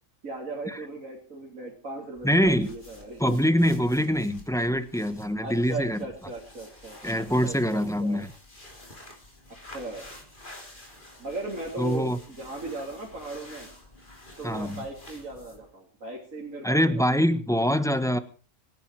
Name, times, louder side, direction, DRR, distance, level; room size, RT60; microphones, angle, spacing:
voice 1, 0.2-3.4 5.4-8.3 9.7-10.1 11.2-13.7 14.4-17.0, right 2 dB, 80° right, -2 dB, 3.6 m, -37 dB
sound 1, 2.1-15.7, left 1 dB, 35° left, 3.6 m, -49 dB
voice 2, 2.2-2.7 3.2-6.0 7.0-8.3 11.8-12.2 14.4-14.8 16.6-18.2, equal, 5° left, 11 dB, 1.1 m, -24 dB
26.0 x 10.5 x 4.8 m, 0.39 s
omnidirectional pair, 1.4 m